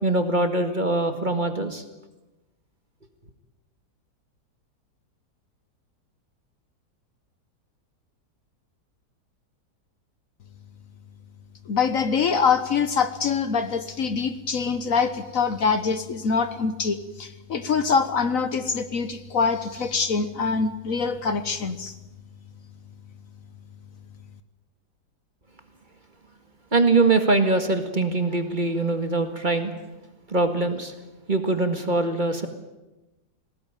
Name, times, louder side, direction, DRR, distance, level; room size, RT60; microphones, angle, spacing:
voice 1, 0.0-1.8 26.7-29.7 30.3-30.9 31.3-32.5, right 3 dB, 30° right, 7 dB, 1.9 m, -22 dB
voice 2, 11.7-21.9, left 5 dB, 55° left, 11 dB, 1.4 m, -24 dB
20.0 x 17.5 x 9.1 m, 1.0 s
omnidirectional pair, 1.7 m